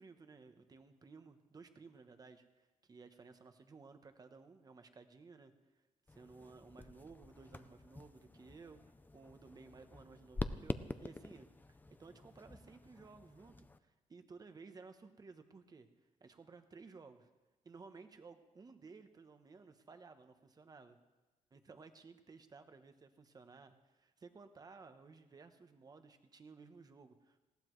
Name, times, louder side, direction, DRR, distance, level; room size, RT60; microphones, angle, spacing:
voice 1, 0.0-2.4 2.8-5.5 6.1-8.8 9.1-15.9 16.2-17.3 17.6-21.0 21.5-27.4, right 4 dB, 25° right, 8 dB, 0.9 m, -57 dB
sound 1, 6.1-13.8, left 2 dB, 15° left, 0.4 m, -47 dB
20.0 x 17.0 x 3.2 m, 1.1 s
wide cardioid pair, 175°, 14 cm